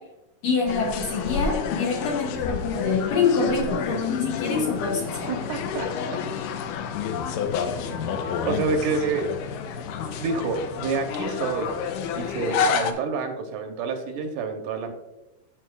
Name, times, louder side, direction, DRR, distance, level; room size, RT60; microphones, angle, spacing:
voice 1, 0.4-5.3, left 4 dB, 65° left, 1 dB, 1.8 m, -25 dB
sound 1, 0.7-12.9, left 6 dB, 90° left, 2.3 m, -29 dB
voice 2, 5.3-6.2 8.3-9.3 10.2-14.9, right 4 dB, 75° right, 5 dB, 2.3 m, -28 dB
14.5 x 5.4 x 2.4 m, 0.99 s
omnidirectional pair, 3.8 m